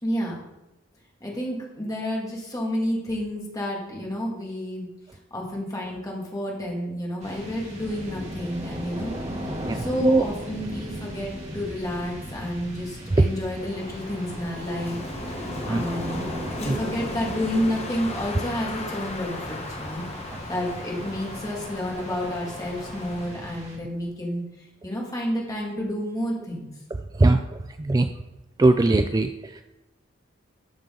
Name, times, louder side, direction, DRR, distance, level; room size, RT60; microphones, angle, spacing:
voice 1, 0.0-0.4 1.2-4.9 5.3-9.1 9.7-15.0 15.3-16.2 16.6-24.4 24.8-26.7, equal, 20° left, -3 dB, 2.3 m, -30 dB
sound 1, 7.2-24.1, equal, 35° right, 2.6 m, -37 dB
voice 2, 9.7-10.2 13.2-13.3 15.7-15.8 16.7-16.8 27.1-27.4 27.8-28.1 28.6-29.6, right 2 dB, 20° right, 8 dB, 0.3 m, -20 dB
Wind, 13.5-23.4, left 2 dB, 35° left, 1.1 m, -37 dB
12.0 x 6.7 x 3.8 m, 1.0 s
head